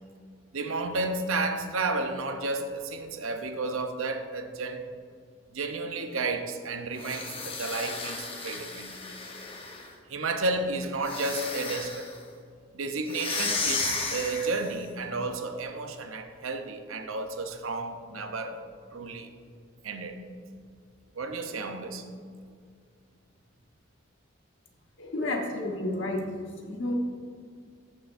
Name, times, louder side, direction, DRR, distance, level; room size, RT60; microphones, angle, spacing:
voice 1, 0.5-4.9 5.5-8.9 10.1-12.1 12.7-18.6 18.9-19.3 19.8-20.2 21.1-22.0, right 3 dB, 85° right, 7 dB, 0.7 m, -32 dB
sound 1, 6.9-9.9 11.0-12.2 13.1-14.8, left 4 dB, 25° left, 0.8 m, -34 dB
voice 2, 25.0-26.3 26.6-26.9, left 2 dB, 65° left, 1 dB, 1.3 m, -30 dB
14.0 x 6.6 x 2.6 m, 2.2 s
head